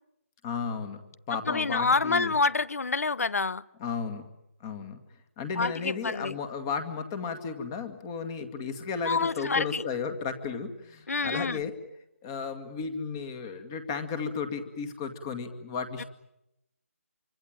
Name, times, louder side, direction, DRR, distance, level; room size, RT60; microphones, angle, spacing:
voice 1, 0.4-1.0 1.3-2.3 3.8-4.3 4.6-5.0 5.4-11.7 12.2-16.0, left 5 dB, 15° left, 2.2 m, -34 dB
voice 2, 1.5-3.6 5.6-6.3 9.0-9.9 11.1-11.6 16.0-16.1, left 4 dB, 75° left, 1.0 m, -27 dB
26.0 x 25.0 x 9.0 m
hypercardioid pair, 170°, 8 cm